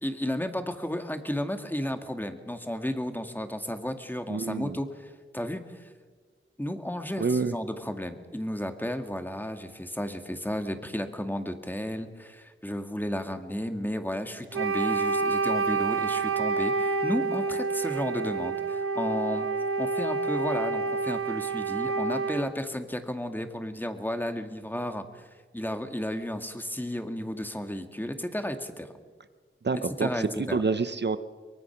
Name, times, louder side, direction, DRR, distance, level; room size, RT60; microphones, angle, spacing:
voice 1, 0.0-5.9 6.6-19.5 19.8-25.2 25.5-28.9 30.0-30.6, equal, 10° left, 6 dB, 2.0 m, -33 dB
voice 2, 4.3-4.8 7.2-7.6 29.6-30.2 30.5-31.2, right 4 dB, 55° right, 11 dB, 0.9 m, -27 dB
Wind instrument woodwind instrument, 14.5-22.6, right 4 dB, 90° right, 1.2 m, -28 dB
23.5 x 23.0 x 6.0 m, 1.5 s
wide cardioid pair, 75°, 21 cm